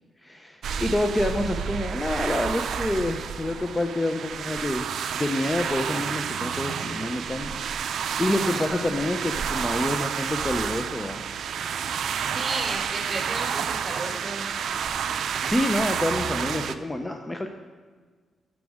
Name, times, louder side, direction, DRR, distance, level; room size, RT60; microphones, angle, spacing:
voice 1, 0.2-11.2 15.5-17.5, left 1 dB, 15° left, 5 dB, 0.5 m, -28 dB
sound 1, 0.6-16.7, right 7 dB, 75° right, 0.4 m, -30 dB
voice 2, 8.4-9.1 12.3-14.4, right 2 dB, 25° right, 0 dB, 2.2 m, -34 dB
12.5 x 6.1 x 3.5 m, 1.5 s
cardioid pair, 90°, 0 cm